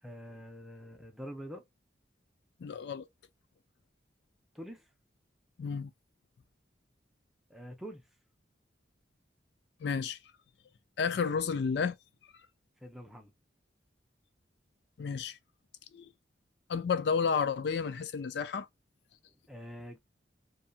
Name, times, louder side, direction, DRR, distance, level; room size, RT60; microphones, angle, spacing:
voice 1, 0.0-1.7 4.5-4.9 7.5-8.1 12.8-13.3 19.5-20.0, equal, ahead, 0.6 m, -45 dB
voice 2, 2.6-3.1 5.6-5.9 9.8-10.2 11.0-11.9 15.0-15.4 15.9-16.1 16.7-18.7, left 6 dB, 65° left, 0.3 m, -31 dB
2.7 x 2.3 x 2.5 m
head